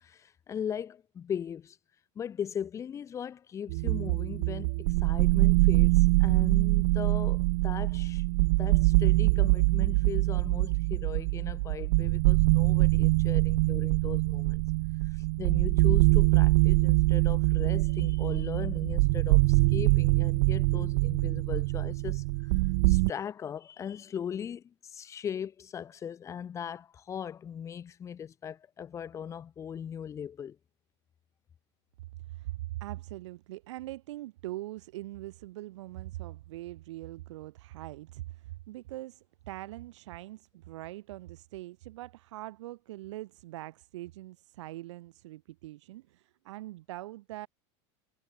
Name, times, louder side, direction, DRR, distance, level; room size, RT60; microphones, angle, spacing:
voice 1, 0.0-1.8 2.2-8.2 8.6-14.6 15.1-22.2 22.9-30.6, left 8 dB, 20° left, 0.8 m, -39 dB
sound 1, 3.7-23.1, right 27 dB, 65° right, 0.6 m, -24 dB
voice 2, 32.2-47.5, right 16 dB, 85° right, 6.3 m, -42 dB
supercardioid pair, 150°, 15 cm